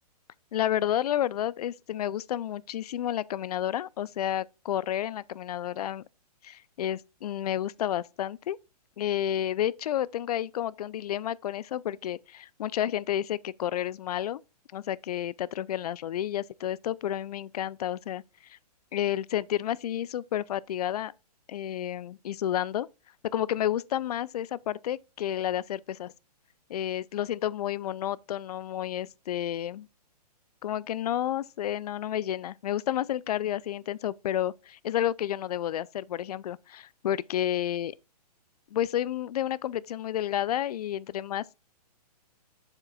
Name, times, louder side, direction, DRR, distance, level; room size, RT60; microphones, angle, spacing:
voice 1, 0.5-6.0 6.4-8.6 9.0-14.4 14.7-18.2 18.5-18.6 18.9-21.1 21.5-22.9 23.3-26.1 26.7-29.9 30.6-37.9 38.7-41.4, left 11 dB, 70° left, 0.4 m, -30 dB
7.2 x 6.7 x 2.2 m
hypercardioid pair, 140°, 21 cm